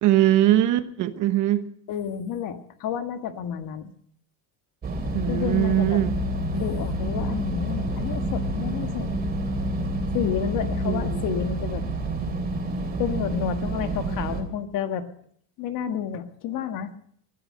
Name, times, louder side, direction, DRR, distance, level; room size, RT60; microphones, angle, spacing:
voice 1, 0.0-1.7 5.1-6.2 10.9-11.2, right 13 dB, 55° right, 11 dB, 1.2 m, -21 dB
voice 2, 1.9-3.9 5.3-6.0 6.5-9.1 10.1-11.8 13.0-15.0 15.6-16.9, left 8 dB, 60° left, 8 dB, 1.7 m, -30 dB
sound 1, 4.8-14.4, right 1 dB, 25° right, 2.9 m, -28 dB
19.5 x 12.5 x 5.4 m, 0.62 s
cardioid pair, 145°, 37 cm